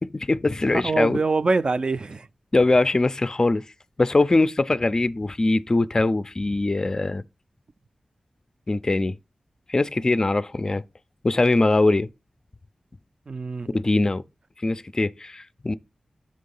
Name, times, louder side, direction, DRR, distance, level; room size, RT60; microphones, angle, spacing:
voice 1, 0.0-1.2 2.5-3.6 4.0-7.2 8.7-9.2 9.7-10.8 11.2-12.1 13.7-14.2 14.6-15.7, left 2 dB, 30° left, 0.4 m, -22 dB
voice 2, 0.7-2.3 13.3-13.7, right 3 dB, 45° right, 0.4 m, -24 dB
7.4 x 3.8 x 5.4 m
wide cardioid pair, 95°, 2 cm